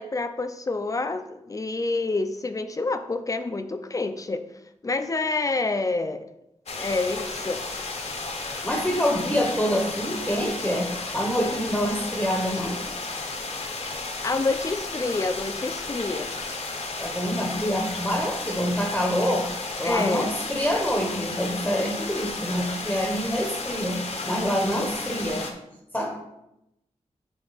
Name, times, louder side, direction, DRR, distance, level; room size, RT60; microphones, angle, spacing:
voice 1, 0.0-4.4 4.8-6.3 6.7-7.6 14.2-16.3 19.8-20.3, left 3 dB, 30° left, 9 dB, 0.4 m, -28 dB
sound 1, 6.7-25.5, left 3 dB, 60° left, 0.8 m, -33 dB
voice 2, 8.6-12.8 17.0-19.5 19.8-25.5 25.9-26.2, equal, 10° left, 1 dB, 0.8 m, -26 dB
8.8 x 3.4 x 4.0 m, 0.86 s
wide cardioid pair, 145°, 12 cm